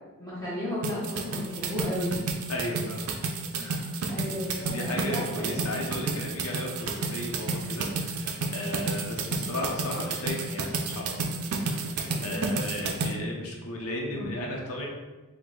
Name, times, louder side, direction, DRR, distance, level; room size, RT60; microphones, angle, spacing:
voice 1, 0.2-2.2 4.1-5.7 9.3-9.4 12.0-12.6 14.1-14.4, left 1 dB, 15° left, -10 dB, 0.8 m, -34 dB
sound 1, 0.8-13.1, right 3 dB, 80° right, 0.5 m, -31 dB
voice 2, 2.5-3.1 3.6-3.9 4.6-11.3 11.7-14.9, left 1 dB, 80° left, -1 dB, 0.7 m, -35 dB
4.6 x 2.1 x 3.8 m, 1.2 s
head